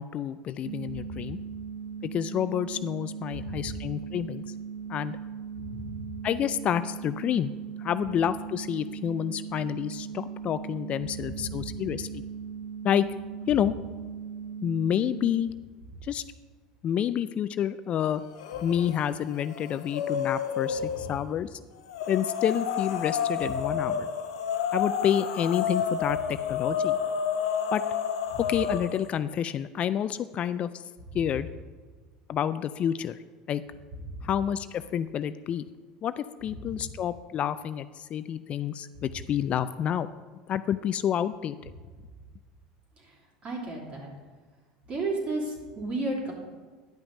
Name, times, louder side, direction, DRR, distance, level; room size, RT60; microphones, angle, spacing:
voice 1, 0.0-1.4 2.0-4.4 4.9-5.2 6.2-7.5 7.8-12.2 12.8-13.1 13.5-13.7 14.6-15.5 16.0-16.2 16.8-18.2 18.6-21.6 22.1-24.1 24.7-27.0 27.7-27.8 28.4-30.7 31.1-31.5 32.3-33.2 33.5-33.6 34.2-35.7 36.0-40.1 40.5-41.5, left 9 dB, 40° left, 14 dB, 0.3 m, -29 dB
sound 1, 0.6-15.3, right 7 dB, 80° right, 0.5 m, -39 dB
voice 2, 5.6-6.0 11.3-11.9 28.3-28.4 34.1-34.2 36.6-36.7 43.4-44.1 44.9-46.3, right 2 dB, 40° right, -3 dB, 3.1 m, -34 dB
Zombie Moan, 18.4-19.0 19.3-21.1 21.9-29.1, left 7 dB, 80° left, 0.7 m, -30 dB
10.5 x 5.7 x 5.3 m, 1.4 s
hypercardioid pair, 95°, 3 cm